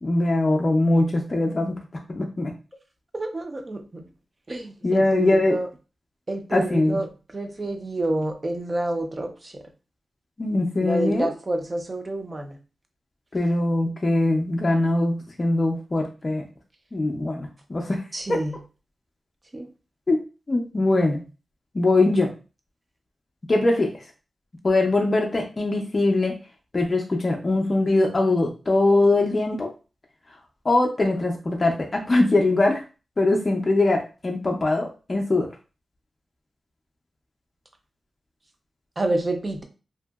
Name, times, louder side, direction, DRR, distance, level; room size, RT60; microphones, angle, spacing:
voice 1, 0.0-1.7 2.1-2.5 4.8-5.6 6.5-7.0 10.4-11.3 13.3-16.4 16.9-18.0 18.3-18.4 20.1-20.2 20.5-21.2 21.7-22.3 23.5-23.9 24.6-26.4 26.7-29.7 30.6-32.8 33.2-35.5, left 2 dB, 30° left, 0 dB, 0.4 m, -22 dB
voice 2, 3.1-4.0 4.5-5.7 6.3-7.1 7.3-9.6 10.8-12.6 18.1-18.5 19.5-19.7 39.0-39.6, right 2 dB, 25° right, 5 dB, 0.4 m, -28 dB
2.8 x 2.6 x 2.3 m, 0.33 s
wide cardioid pair, 155°, 0 cm